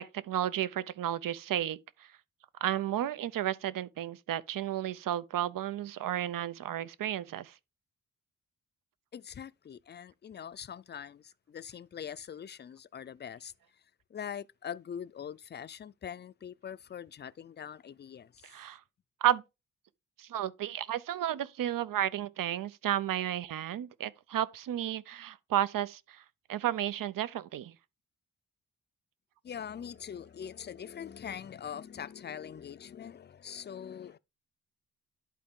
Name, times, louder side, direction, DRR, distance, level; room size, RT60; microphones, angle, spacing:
voice 1, 0.0-2.1 2.6-7.5 18.4-18.8 19.2-19.4 20.2-26.2 26.5-27.7, right 11 dB, 85° right, 0.7 m, -32 dB
voice 2, 9.1-13.5 14.1-18.5 29.4-34.2, left 8 dB, 35° left, 0.4 m, -43 dB
11.0 x 4.5 x 3.7 m
wide cardioid pair, 120°, 32 cm